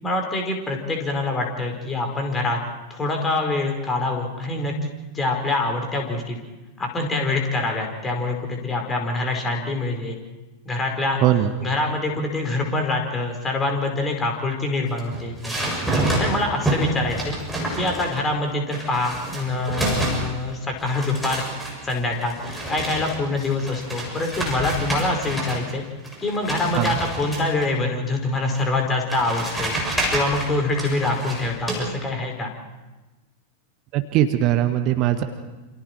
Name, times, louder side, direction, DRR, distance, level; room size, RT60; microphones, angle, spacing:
voice 1, 0.0-2.6 2.9-6.4 6.8-10.2 10.6-11.2 11.6-15.5 16.2-17.3 17.8-21.4 21.8-25.8 26.2-29.8 30.1-32.5, left 2 dB, 15° left, 2 dB, 4.8 m, -25 dB
voice 2, 11.2-11.5 26.7-27.0 33.9-35.2, right 12 dB, 40° right, 8 dB, 1.4 m, -20 dB
sound 1, 14.9-18.3 18.7-20.5 20.8-25.7 26.0-27.7 28.6-28.7 29.1-31.8, right 1 dB, 5° right, 7.4 m, -28 dB
28.5 x 27.5 x 4.6 m, 1.1 s
figure-of-eight pair, 90°, 0 cm